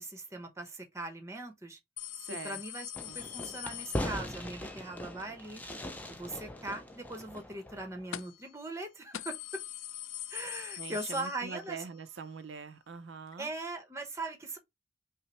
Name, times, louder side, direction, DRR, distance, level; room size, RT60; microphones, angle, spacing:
voice 1, 0.0-1.8 2.4-5.6 6.1-9.6 10.3-11.8 13.4-14.6, right 2 dB, 15° right, 0.8 m, -40 dB
sound 1, 2.0-4.7 8.1-8.5 8.8-8.9 9.1-11.9 12.2-12.3 13.3-13.4, left 14 dB, 85° left, 0.3 m, -43 dB
voice 2, 2.1-2.6 3.1-3.2 10.8-13.5, right 5 dB, 70° right, 0.5 m, -44 dB
Fireworks, 3.0-8.2, left 1 dB, 10° left, 0.5 m, -40 dB
5.5 x 2.0 x 3.1 m
head